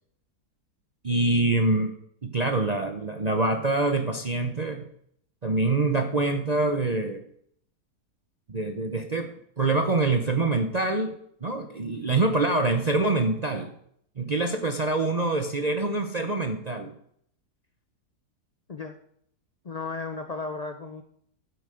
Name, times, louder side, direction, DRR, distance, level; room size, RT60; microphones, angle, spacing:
voice 1, 1.0-1.9 2.2-4.8 5.4-7.2 8.5-9.3 9.6-13.7 14.2-16.9, right 2 dB, 40° right, 5 dB, 0.5 m, -25 dB
voice 2, 19.6-21.0, left 4 dB, 50° left, 6 dB, 0.4 m, -34 dB
12.5 x 8.0 x 5.0 m, 0.69 s
omnidirectional pair, 1.8 m